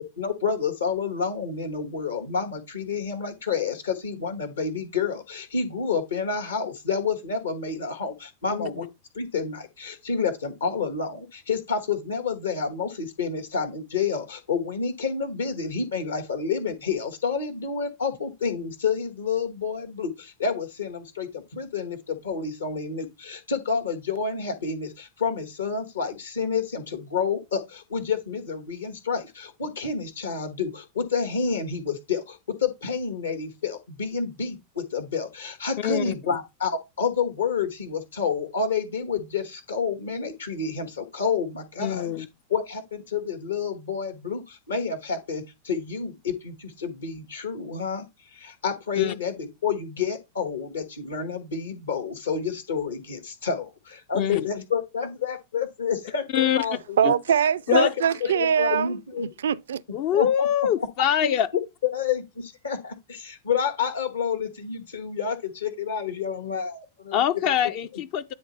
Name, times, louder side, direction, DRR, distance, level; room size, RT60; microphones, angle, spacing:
voice 1, 0.0-8.9 9.1-42.1 42.5-48.1 48.3-57.1 57.7-57.9 58.3-59.3 60.1-60.3 61.2-61.3 61.8-67.5, left 6 dB, 70° left, 1.3 m, -29 dB
voice 2, 8.5-8.9 35.8-36.1 41.8-42.3 49.0-49.1 54.1-54.5 56.3-56.6 57.0-57.1 57.7-57.9 59.9-61.5 67.1-68.3, left 9 dB, 45° left, 0.4 m, -24 dB
voice 3, 57.0-59.8, right 8 dB, 65° right, 0.3 m, -23 dB
9.5 x 3.2 x 4.2 m
figure-of-eight pair, 90°, 0 cm